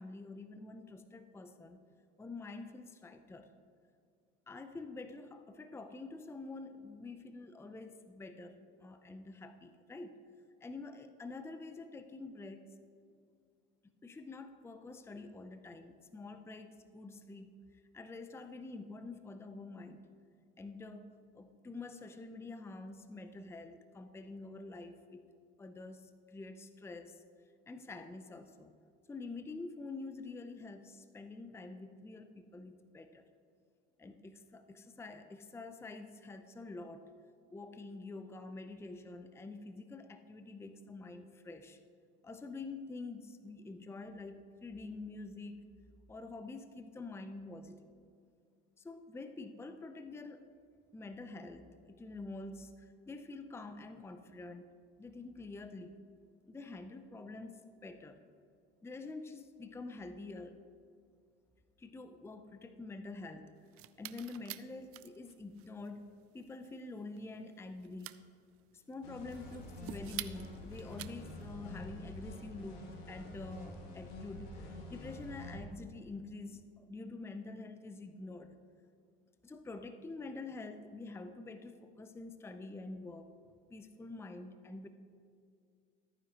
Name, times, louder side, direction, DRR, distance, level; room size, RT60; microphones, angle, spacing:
voice 1, 0.0-1.8 2.2-3.5 4.5-10.2 10.6-12.7 14.0-17.6 17.9-20.0 20.6-25.3 25.6-27.2 27.7-28.7 29.1-33.3 34.0-37.1 37.5-41.8 42.2-45.7 46.1-47.9 48.8-50.4 50.9-54.7 55.0-56.0 56.5-58.2 58.8-60.6 61.8-63.5 64.0-68.1 68.7-78.6 79.4-83.3 83.7-84.9, left 3 dB, 10° left, 9 dB, 0.5 m, -47 dB
sound 1, 63.6-71.5, right 15 dB, 50° right, 0.5 m, -49 dB
sound 2, 69.0-75.6, left 1 dB, 80° left, 1.9 m, -47 dB
13.5 x 9.5 x 2.9 m, 2.2 s
supercardioid pair, 85°, 30 cm